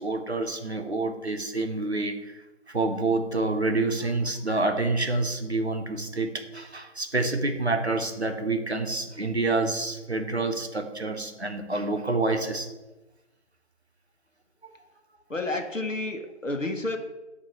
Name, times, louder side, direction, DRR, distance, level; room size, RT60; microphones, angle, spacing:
voice 1, 0.0-12.7 14.6-14.7, right 2 dB, 60° right, 6 dB, 0.9 m, -28 dB
voice 2, 15.3-17.0, left 2 dB, 90° left, 4 dB, 1.2 m, -30 dB
8.1 x 3.0 x 5.5 m, 1.1 s
figure-of-eight pair, 175°, 37 cm